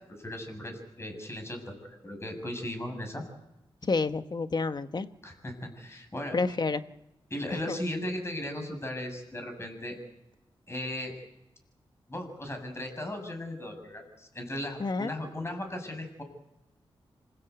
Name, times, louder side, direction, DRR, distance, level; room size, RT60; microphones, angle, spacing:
voice 1, 0.2-1.8 2.0-3.2 5.2-6.4 7.3-10.0 10.7-11.1 12.1-16.2, left 1 dB, 25° left, 5 dB, 7.2 m, -37 dB
voice 2, 3.9-5.1 6.3-6.8 7.7-7.8 14.8-15.1, left 3 dB, 45° left, 10 dB, 1.3 m, -29 dB
27.0 x 16.0 x 8.2 m, 0.96 s
cardioid pair, 70°, 10 cm